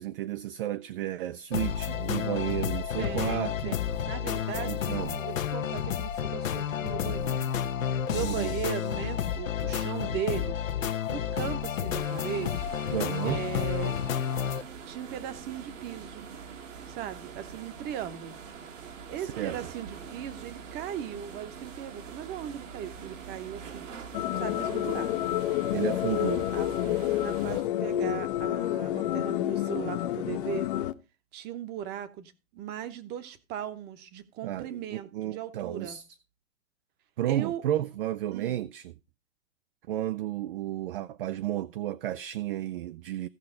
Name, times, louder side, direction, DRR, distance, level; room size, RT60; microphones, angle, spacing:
voice 1, 0.0-3.8 4.6-5.2 8.2-8.6 12.9-13.4 19.2-19.6 25.7-26.5 34.4-36.0 37.2-38.9 39.9-43.3, right 13 dB, 45° right, 0.5 m, -32 dB
sound 1, 1.5-14.6, left 9 dB, 80° left, 1.0 m, -31 dB
voice 2, 3.0-3.8 4.1-4.8 5.2-7.5 8.1-10.6 11.1-12.7 13.2-14.0 14.9-16.3 16.9-18.4 19.1-23.9 24.4-25.1 26.5-30.7 31.3-36.0 37.3-37.6 38.3-38.6, right 10 dB, 25° right, 1.0 m, -38 dB
sound 2, 12.0-27.6, right 6 dB, 70° right, 1.9 m, -44 dB
sound 3, 24.1-30.9, left 13 dB, 40° left, 0.7 m, -29 dB
16.0 x 5.6 x 3.8 m
hypercardioid pair, 135°, 39 cm